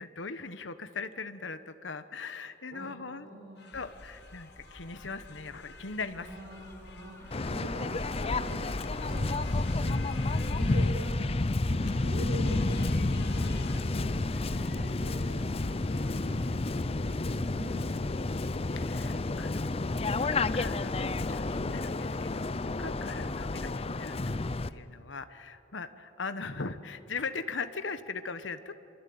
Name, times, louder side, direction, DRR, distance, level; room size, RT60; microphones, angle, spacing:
voice 1, 0.0-3.3 3.7-6.3 18.7-28.7, left 4 dB, 75° left, 10 dB, 1.2 m, -40 dB
voice 2, 2.7-3.6 6.1-10.0 10.5-11.2 11.6-14.2 14.5-16.5 17.0-18.6 23.1-23.4, right 1 dB, 75° right, -3 dB, 5.2 m, -44 dB
sound 1, 3.6-18.8, left 6 dB, 60° left, 1.7 m, -53 dB
sound 2, 3.7-22.5, equal, 15° left, 3.5 m, -52 dB
Waves surf, 7.3-24.7, left 2 dB, 30° left, 0.6 m, -30 dB
26.0 x 24.5 x 8.8 m, 2.6 s
head